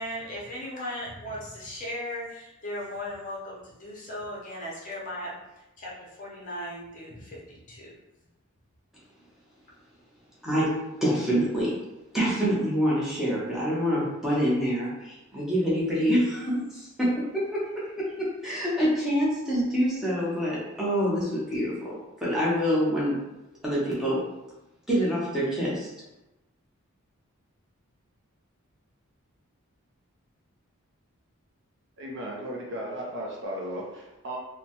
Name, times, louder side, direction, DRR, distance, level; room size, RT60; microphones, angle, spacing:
voice 1, 0.0-7.9, left 1 dB, 35° left, -5 dB, 0.7 m, -37 dB
voice 2, 11.0-11.7 12.1-23.2 23.6-24.2 24.9-25.9, equal, ahead, -8 dB, 0.8 m, -26 dB
voice 3, 32.0-34.4, equal, 50° right, -2 dB, 0.5 m, -35 dB
2.9 x 2.1 x 2.9 m, 0.96 s
head